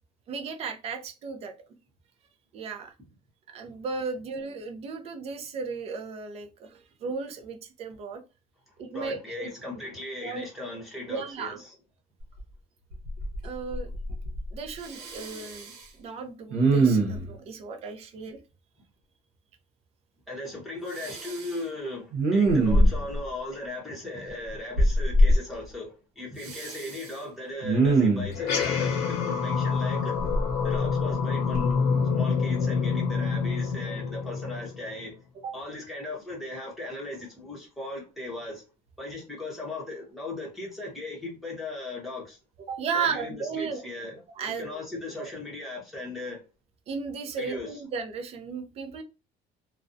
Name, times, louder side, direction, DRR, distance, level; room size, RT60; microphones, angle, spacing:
voice 1, 0.3-1.5 2.5-2.9 3.5-8.2 8.8-9.5 10.2-10.4 11.1-11.6 13.4-13.9 14.5-18.4 35.4-35.5 42.7-43.8 44.4-44.8 45.2-45.3 46.9-49.0, right 5 dB, 35° right, 0.4 m, -35 dB
voice 2, 8.9-11.7 20.3-30.1 30.6-31.9 32.1-35.1 35.5-38.6 39.0-42.4 42.9-44.2 44.6-46.4 47.4-47.7, left 2 dB, ahead, 0.8 m, -37 dB
Respiratory sounds, 12.4-12.5 12.9-13.5 13.7-14.5 14.8-15.8 16.5-17.3 20.9-21.6 22.1-23.2 24.8-25.4 26.4-27.1 27.6-28.4 30.2-31.1 31.5-31.7, right 1 dB, 85° right, 0.8 m, -23 dB
sound 1, 28.3-35.0, left 5 dB, 85° left, 0.7 m, -27 dB
2.4 x 2.1 x 2.5 m
cardioid pair, 165°, 17 cm